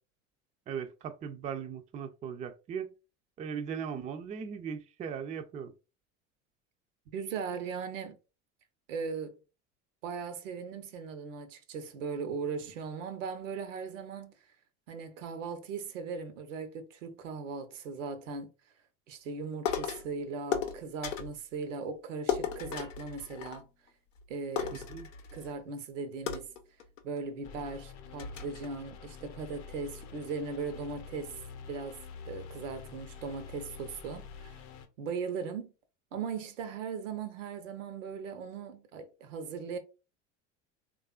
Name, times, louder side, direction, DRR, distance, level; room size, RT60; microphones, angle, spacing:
voice 1, 0.7-2.9 3.4-5.7 24.9-25.1, right 7 dB, 20° right, 0.3 m, -38 dB
voice 2, 7.1-8.2 8.9-9.4 10.0-14.3 14.9-18.5 19.1-23.6 24.3-24.8 25.3-26.5 27.0-31.4 31.7-32.0 32.3-34.7 35.0-35.7 36.1-39.8, right 5 dB, 80° right, 0.8 m, -38 dB
sound 1, 19.7-20.1 20.5-21.4 22.3-23.9 24.2-24.3 24.6-25.6 26.3-27.2 27.7-27.8 28.2-28.7, left 8 dB, 90° left, 0.6 m, -35 dB
sound 2, 27.4-34.9, left 6 dB, 45° left, 0.7 m, -47 dB
3.4 x 2.4 x 2.3 m
hypercardioid pair, 80°, 37 cm